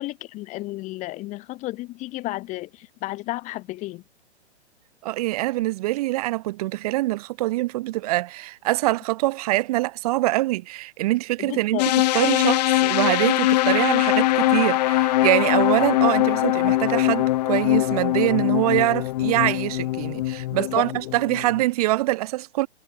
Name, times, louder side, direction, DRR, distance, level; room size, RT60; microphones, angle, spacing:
voice 1, 0.0-4.0 11.4-11.9 20.6-20.9, left 19 dB, 20° left, 1.2 m, -32 dB
voice 2, 5.0-11.8 12.1-22.7, right 18 dB, 35° right, 0.9 m, -24 dB
sound 1, 11.8-21.6, left 16 dB, 35° left, 0.9 m, -22 dB
figure-of-eight pair, 120°, 34 cm